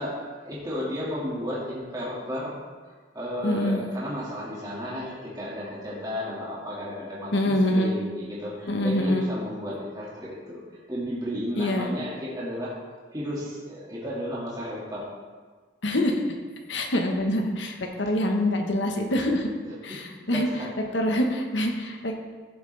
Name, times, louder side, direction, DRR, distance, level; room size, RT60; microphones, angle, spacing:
voice 1, 0.0-2.5 2.8-10.6 10.9-12.8 13.1-15.1 19.6-20.7, equal, 20° right, -7 dB, 2.2 m, -33 dB
voice 2, 3.4-3.8 7.3-8.0 8.7-9.3 11.6-11.9 15.8-16.2 16.7-19.5 19.8-20.5 20.9-22.1, left 1 dB, 85° left, 3 dB, 1.3 m, -25 dB
15.0 x 7.3 x 3.4 m, 1.4 s
head